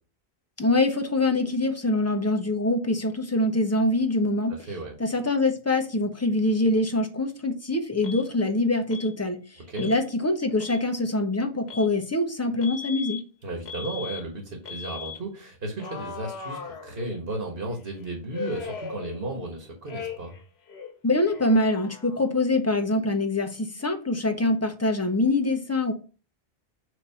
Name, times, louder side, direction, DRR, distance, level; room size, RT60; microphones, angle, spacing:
voice 1, 0.6-4.5 5.0-13.2 21.0-25.9, left 2 dB, 15° left, 5 dB, 0.8 m, -24 dB
voice 2, 4.5-5.0 9.7-9.9 13.4-20.3, right 2 dB, 65° right, 1 dB, 1.8 m, -34 dB
Alarm, 8.0-8.2 8.9-9.1 9.7-10.0 10.5-10.8 11.7-11.9 12.6-13.2 13.7-14.2 14.7-15.2 15.8-17.3 18.3-19.5 19.9-20.4 20.7-22.4, left 6 dB, 85° left, 1.2 m, -38 dB
8.3 x 2.9 x 5.6 m, 0.36 s
omnidirectional pair, 1.0 m